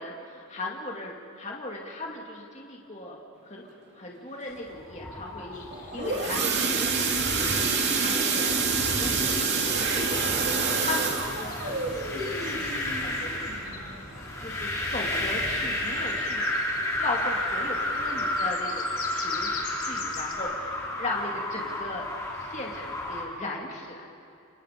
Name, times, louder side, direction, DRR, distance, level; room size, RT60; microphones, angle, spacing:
voice 1, 0.0-8.5 8.8-10.2 10.5-13.6 14.4-16.4 17.0-22.1 22.3-24.0, left 2 dB, 30° left, -1 dB, 2.5 m, -37 dB
sound 1, 4.7-23.2, left 1 dB, 15° left, 4.1 m, -32 dB
sound 2, 5.5-20.3, left 6 dB, 80° left, 2.7 m, -46 dB
sound 3, 5.7-14.4 14.8-15.1 15.3-15.4 15.9-16.0, right 4 dB, 50° right, 2.6 m, -27 dB
30.0 x 25.0 x 5.3 m, 2.7 s
head